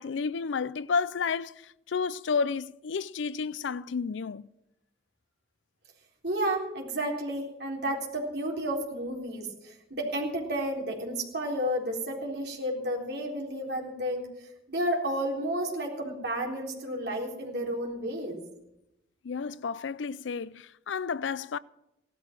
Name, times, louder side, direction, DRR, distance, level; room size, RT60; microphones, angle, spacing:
voice 1, 0.0-4.5 19.2-21.6, left 5 dB, 80° left, 0.4 m, -31 dB
voice 2, 6.2-14.3 14.7-18.4, right 1 dB, 60° right, 3.8 m, -31 dB
17.5 x 12.5 x 6.0 m
head